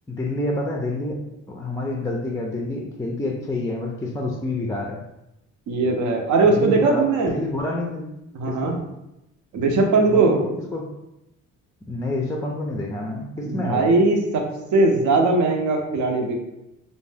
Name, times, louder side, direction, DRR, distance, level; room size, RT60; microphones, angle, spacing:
voice 1, 0.1-1.2 1.5-5.0 6.4-8.1 8.5-8.8 10.1-10.9 11.9-13.9, left 2 dB, 10° left, 0 dB, 0.3 m, -28 dB
voice 2, 5.7-7.4 8.3-8.8 9.5-10.4 13.4-14.4 14.7-16.4, right 3 dB, 75° right, 2 dB, 0.6 m, -19 dB
2.5 x 2.0 x 3.3 m, 0.89 s
cardioid pair, 90°, 30 cm